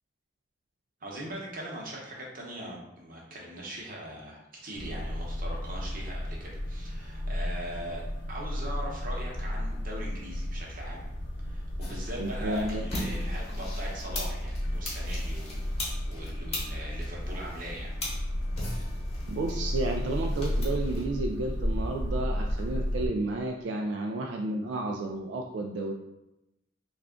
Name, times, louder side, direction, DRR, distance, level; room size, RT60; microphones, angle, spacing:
voice 1, 1.0-8.0 8.3-11.0 11.4-15.7 16.1-18.0, right 1 dB, 50° right, -3 dB, 0.9 m, -40 dB
sound 1, 4.7-23.1, left 1 dB, 75° left, 0.7 m, -33 dB
sound 2, 11.8-21.0, left 1 dB, 35° left, 1.0 m, -39 dB
voice 2, 12.2-12.8 19.3-25.9, right 2 dB, 80° right, 1 dB, 0.3 m, -32 dB
3.3 x 2.4 x 3.6 m, 0.90 s
head